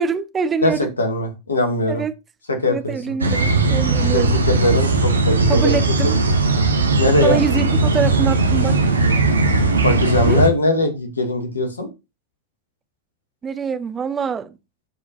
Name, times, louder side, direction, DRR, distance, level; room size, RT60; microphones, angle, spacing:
voice 1, 0.0-0.9 1.9-2.1 2.6-4.4 5.5-6.2 7.2-8.8 10.3-10.4 13.4-14.6, right 5 dB, 20° right, 0.9 m, -24 dB
voice 2, 0.6-2.0 2.5-3.1 4.1-6.1 7.0-7.4 9.8-11.9, left 2 dB, 75° left, 2.3 m, -21 dB
sound 1, 3.2-10.5, right 3 dB, 75° right, 1.4 m, -18 dB
13.5 x 5.0 x 2.6 m
figure-of-eight pair, 90°, 0 cm